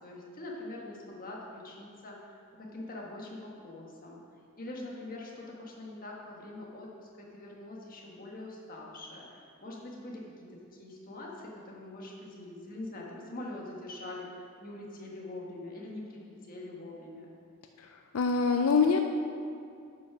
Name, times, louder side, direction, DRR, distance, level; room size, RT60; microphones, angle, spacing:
voice 1, 0.0-4.2 4.6-14.3 14.6-17.3, left 2 dB, 45° left, -2 dB, 1.5 m, -44 dB
voice 2, 18.1-19.0, left 5 dB, 80° left, 4 dB, 0.5 m, -24 dB
8.6 x 5.8 x 6.0 m, 2.4 s
head